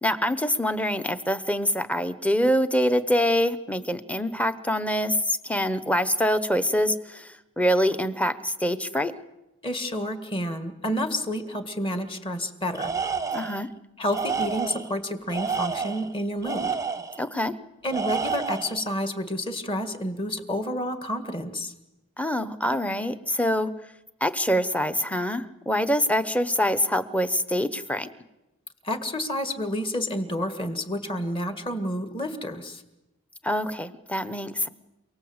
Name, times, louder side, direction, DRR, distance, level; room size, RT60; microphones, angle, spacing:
voice 1, 0.0-9.1 13.3-13.7 17.2-17.5 22.2-23.7 24.2-28.1 33.4-34.7, equal, 5° left, 11 dB, 0.9 m, -25 dB
voice 2, 9.6-12.9 14.0-16.8 17.8-21.7 28.8-32.8, equal, 25° left, 8 dB, 2.0 m, -29 dB
Tools, 12.7-13.6 14.1-14.9 15.3-17.2 17.9-18.8, right 5 dB, 15° right, 0.9 m, -29 dB
28.5 x 18.5 x 8.1 m, 0.97 s
head